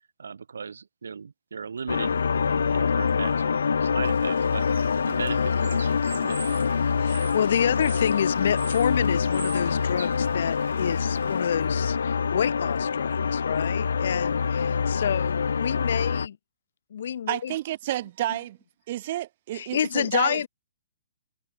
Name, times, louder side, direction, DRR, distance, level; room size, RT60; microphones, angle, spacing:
voice 1, 0.2-6.6, right 5 dB, 85° right, 4.2 m, -38 dB
sound 1, 1.9-16.3, left 6 dB, 85° left, 2.9 m, -25 dB
Bird / Water, 4.0-11.5, right 7 dB, 70° right, 6.7 m, -44 dB
voice 2, 7.0-16.4 16.9-17.5 19.5-20.5, left 9 dB, 55° left, 1.6 m, -28 dB
voice 3, 17.3-18.6 18.9-20.5, right 14 dB, 40° right, 1.3 m, -30 dB
hypercardioid pair, 160°, 0 cm